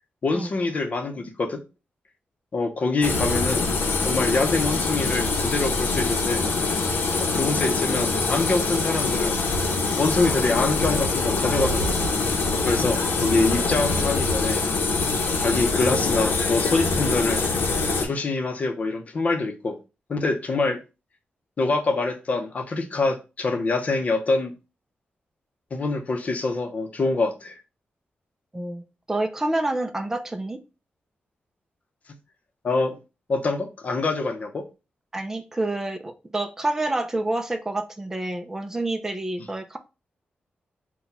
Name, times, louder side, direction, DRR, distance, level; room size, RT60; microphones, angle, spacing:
voice 1, 0.2-1.6 2.5-3.7 4.0-6.4 7.2-9.4 10.0-11.9 12.3-14.6 15.4-17.5 18.0-19.8 20.1-20.8 21.6-24.5 25.7-27.5 32.6-33.0 33.3-34.6, left 3 dB, 40° left, 0.8 m, -25 dB
sound 1, 3.0-18.1, left 3 dB, 75° left, 0.8 m, -24 dB
voice 2, 28.5-30.6 35.1-39.8, right 2 dB, 15° right, 0.4 m, -28 dB
4.1 x 2.3 x 4.1 m
wide cardioid pair, 150°, 4 cm